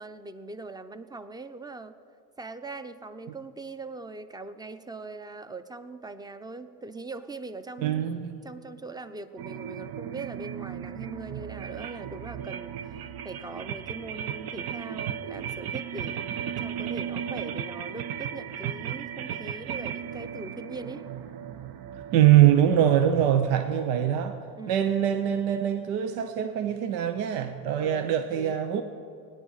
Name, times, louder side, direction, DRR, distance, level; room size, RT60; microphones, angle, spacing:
voice 1, 0.0-2.0 2.4-8.1 8.4-12.8 13.2-16.3 16.6-21.1 24.5-25.0 27.8-28.6, right 3 dB, 10° right, 0.6 m, -41 dB
voice 2, 7.8-8.4 22.1-24.4 24.7-28.8, right 11 dB, 80° right, 0.8 m, -23 dB
sound 1, 9.4-23.3, right 8 dB, 55° right, 0.8 m, -36 dB
17.5 x 10.0 x 4.1 m
supercardioid pair, 80°, 47 cm